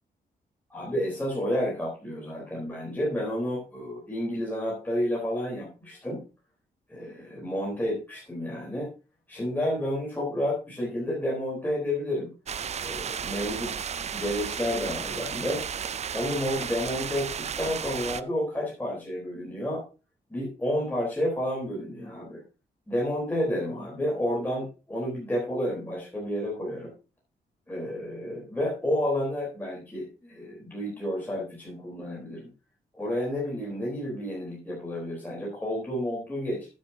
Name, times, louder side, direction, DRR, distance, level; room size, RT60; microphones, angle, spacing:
voice 1, 0.7-6.2 6.9-8.9 9.3-12.3 12.8-13.9 14.1-15.6 16.1-19.8 20.3-22.4 22.9-26.9 27.7-32.5 32.9-36.7, left 1 dB, 10° left, -4 dB, 3.8 m, -30 dB
sound 1, 12.5-18.2, right 7 dB, 40° right, 0.4 m, -34 dB
12.0 x 9.5 x 2.8 m, 0.33 s
cardioid pair, 105°, 17 cm